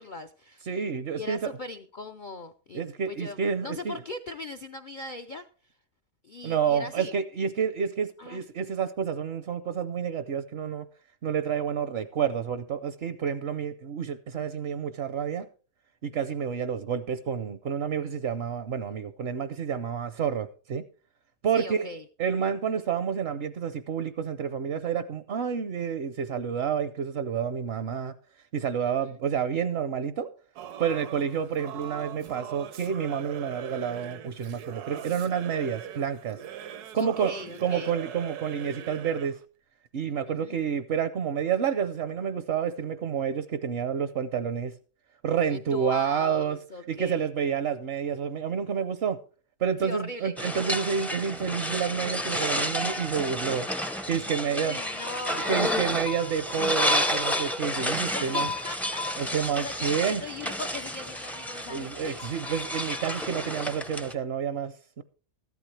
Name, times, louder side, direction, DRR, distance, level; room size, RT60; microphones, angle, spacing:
voice 1, 0.0-0.6 1.2-5.4 6.2-7.1 8.2-8.4 21.5-22.0 28.8-29.2 36.9-37.9 40.3-40.6 45.5-47.3 49.8-50.4 54.4-55.6 57.8-62.2, left 2 dB, 70° left, 0.4 m, -39 dB
voice 2, 0.7-1.5 2.7-4.0 6.4-10.9 11.2-15.5 16.0-20.8 21.4-21.9 22.2-28.1 28.5-30.3 30.8-36.4 36.9-37.3 37.6-39.4 39.9-44.7 45.2-46.6 46.9-49.2 49.6-53.7 54.1-54.8 55.5-58.5 59.2-60.2 61.7-65.0, right 7 dB, 55° right, 0.7 m, -29 dB
Singing / Musical instrument, 30.6-39.4, right 9 dB, 75° right, 1.3 m, -41 dB
sound 1, 50.4-64.1, left 1 dB, ahead, 0.3 m, -30 dB
14.5 x 12.0 x 3.3 m
omnidirectional pair, 1.7 m